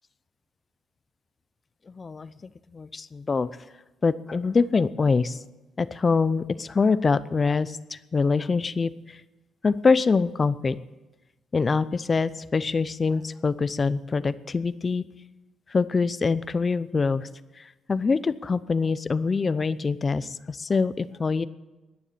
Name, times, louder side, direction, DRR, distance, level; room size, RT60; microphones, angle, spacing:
voice 1, 1.9-3.5 4.0-5.4 5.8-9.2 9.6-10.8 11.5-15.0 15.7-17.3 17.6-21.5, left 4 dB, 35° left, 16 dB, 0.7 m, -24 dB
20.0 x 7.1 x 8.6 m, 1.1 s
cardioid pair, 90°, 0 cm